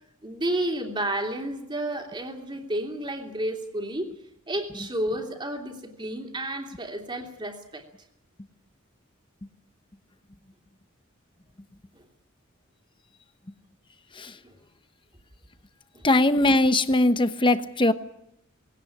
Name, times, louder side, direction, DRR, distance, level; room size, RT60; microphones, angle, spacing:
voice 1, 0.2-4.1 4.5-7.8 11.9-12.0 14.4-14.5 15.9-16.0, right 1 dB, 20° right, 3 dB, 2.9 m, -31 dB
voice 2, 16.0-17.9, left 2 dB, 25° left, 11 dB, 1.0 m, -20 dB
20.0 x 17.5 x 10.0 m, 0.81 s
head